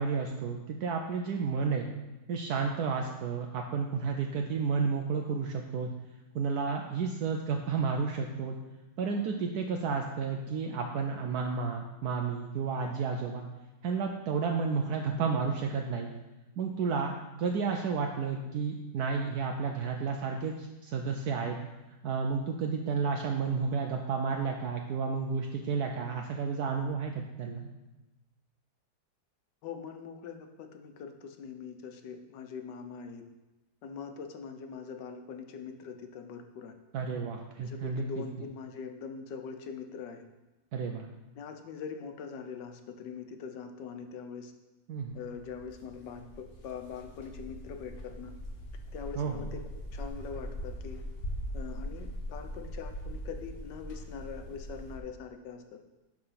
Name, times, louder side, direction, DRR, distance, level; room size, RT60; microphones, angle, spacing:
voice 1, 0.0-1.9 2.3-5.9 6.3-8.6 9.0-13.5 13.8-16.1 16.6-17.1 17.4-21.6 22.0-27.1 27.4-27.7 36.9-38.0 40.7-41.1 44.9-45.2 49.2-49.4, right 5 dB, 70° right, 3 dB, 1.1 m, -31 dB
voice 2, 29.6-33.2 33.8-36.7 37.6-40.2 41.4-44.5 45.1-48.3 48.9-51.0 51.5-55.8, left 6 dB, 85° left, 6 dB, 1.4 m, -43 dB
sound 1, 45.0-55.0, equal, 40° left, 1.0 m, -41 dB
10.5 x 3.8 x 5.7 m, 1.1 s
omnidirectional pair, 1.8 m